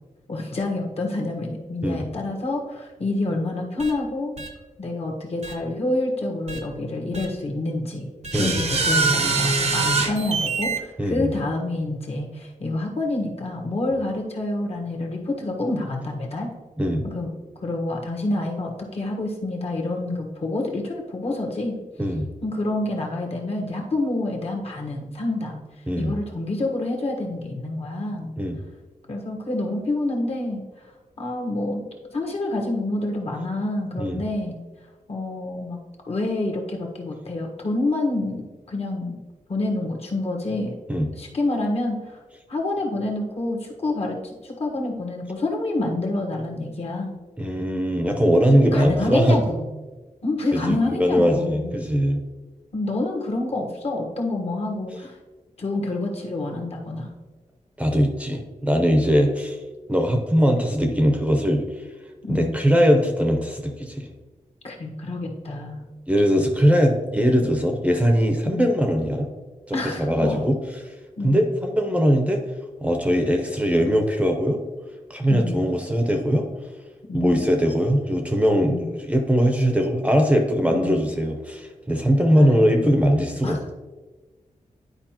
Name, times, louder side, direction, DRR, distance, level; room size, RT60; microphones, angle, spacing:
voice 1, 0.3-4.3 4.8-8.1 8.3-16.5 17.0-17.3 17.6-21.8 22.4-25.6 26.0-28.3 29.1-30.6 31.2-34.6 35.1-35.8 36.1-38.4 38.7-39.2 39.5-40.7 41.1-42.2 42.5-47.1 48.5-49.7 50.2-51.9 52.7-55.2 55.6-57.1 62.2-62.6 64.6-65.8 68.4-68.7 69.7-70.4 71.2-71.5 75.3-75.6 77.1-77.4 78.6-78.9 80.7-80.9 82.3-83.7, left 2 dB, 50° left, 1 dB, 1.3 m, -27 dB
sound 1, 3.8-3.9 4.4-4.5 5.4-5.5 6.5-6.6 7.1-7.3 8.2-10.8, right 3 dB, 50° right, 0.8 m, -23 dB
voice 2, 11.0-11.3 16.8-17.0 22.0-22.3 25.9-26.1 28.4-28.6 34.0-34.2 40.9-41.1 47.4-49.4 50.5-52.2 57.8-59.6 59.9-61.6 62.3-64.1 66.1-69.3 69.7-70.6 71.2-72.4 72.8-74.6 75.1-76.5 77.1-83.7, equal, 10° right, 4 dB, 0.7 m, -21 dB
10.5 x 4.7 x 2.9 m, 1.3 s
wide cardioid pair, 115°, 14 cm